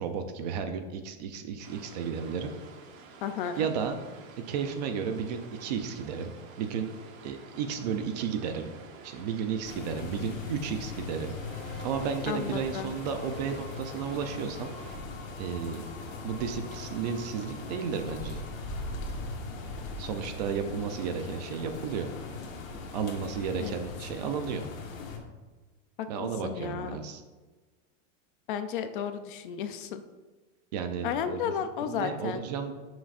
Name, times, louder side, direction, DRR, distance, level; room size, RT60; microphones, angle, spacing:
voice 1, 0.0-2.5 3.6-4.0 4.5-6.9 7.2-8.7 9.0-11.4 11.8-14.7 15.4-15.8 16.2-18.4 20.0-22.1 22.9-24.7 26.1-27.2 30.7-31.4 31.8-32.7, right 6 dB, 35° right, 7 dB, 0.4 m, -33 dB
sound 1, 1.6-15.0, right 4 dB, 85° right, 1.5 m, -50 dB
voice 2, 3.2-3.7 12.3-12.9 23.6-23.7 26.0-27.0 28.5-30.0 31.0-32.4, left 8 dB, 45° left, 9 dB, 0.4 m, -33 dB
sound 2, 9.6-25.2, left 3 dB, 80° left, 1.6 m, -40 dB
sound 3, 11.4-19.2, equal, ahead, 0.8 m, -50 dB
11.0 x 6.2 x 2.5 m, 1.3 s
supercardioid pair, 170°, 39 cm